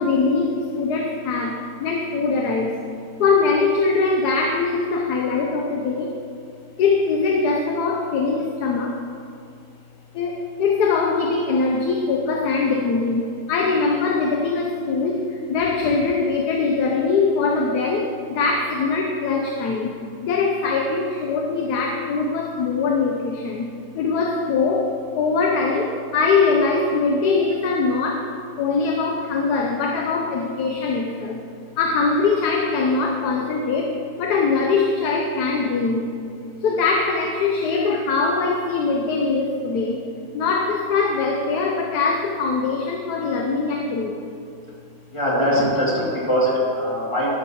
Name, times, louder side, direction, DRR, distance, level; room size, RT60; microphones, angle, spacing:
voice 1, 0.0-2.7 3.2-6.1 6.8-9.0 10.1-19.9 20.2-23.7 23.9-28.3 28.6-31.4 31.8-36.1 36.6-40.0 40.3-44.1, left 4 dB, 75° left, 1 dB, 1.3 m, -22 dB
voice 2, 45.1-47.4, equal, 15° left, -7 dB, 2.7 m, -21 dB
12.0 x 10.5 x 3.0 m, 2.5 s
omnidirectional pair, 1.8 m